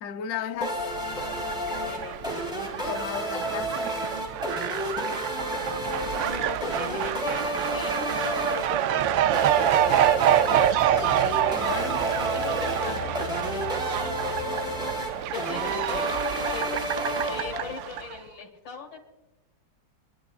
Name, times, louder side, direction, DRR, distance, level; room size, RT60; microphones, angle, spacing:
voice 1, 0.0-0.8 2.9-4.0 11.5-13.0, left 8 dB, 60° left, 0.9 m, -35 dB
sound 1, 0.6-18.0, equal, ahead, 3.8 m, -32 dB
Fowl, 0.8-18.2, right 11 dB, 85° right, 1.3 m, -27 dB
voice 2, 1.1-2.4 6.2-10.0 12.2-14.2 15.3-19.0, left 5 dB, 80° left, 2.6 m, -41 dB
sound 2, 9.0-14.9, left 4 dB, 40° left, 1.4 m, -40 dB
28.5 x 11.5 x 2.4 m
omnidirectional pair, 2.0 m